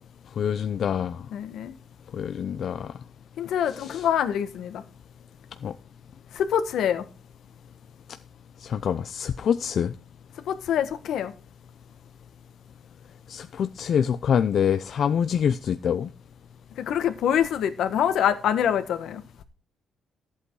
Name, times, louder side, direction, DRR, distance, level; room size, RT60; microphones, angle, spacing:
voice 1, 0.4-1.2 2.1-2.9 3.7-4.1 5.6-5.7 8.6-9.9 13.3-16.1, left 8 dB, 45° left, 0.5 m, -26 dB
voice 2, 1.3-1.7 3.4-4.8 6.3-7.1 10.4-11.3 16.8-19.4, left 9 dB, 70° left, 1.5 m, -25 dB
14.0 x 8.3 x 4.8 m
cardioid pair, 170°, 0 cm